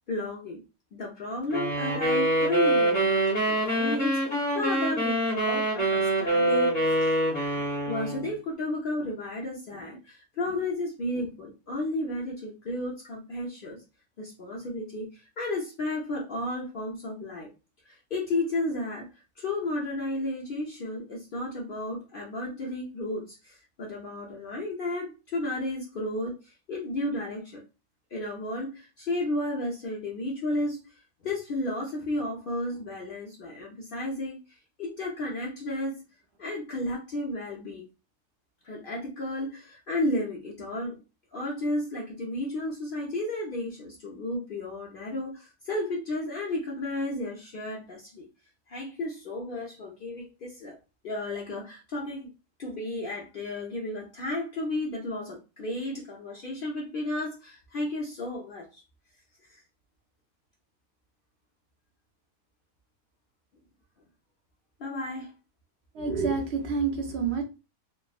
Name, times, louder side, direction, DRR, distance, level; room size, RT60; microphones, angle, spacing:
voice 1, 0.1-0.6 0.9-7.2 7.5-13.8 14.2-17.5 17.8-19.1 19.4-27.6 28.1-30.8 31.2-34.4 34.8-36.0 36.4-37.9 38.6-41.0 41.3-48.3 48.7-50.8 51.0-52.3 52.6-58.7 59.5-59.6 64.8-65.3, left 1 dB, 75° left, -2 dB, 0.5 m, -33 dB
sound 1, 1.5-8.3, right 1 dB, 40° left, 1.4 m, -25 dB
voice 2, 65.9-67.4, right 5 dB, 75° right, 2 dB, 0.6 m, -28 dB
3.4 x 2.0 x 2.3 m, 0.29 s
omnidirectional pair, 1.7 m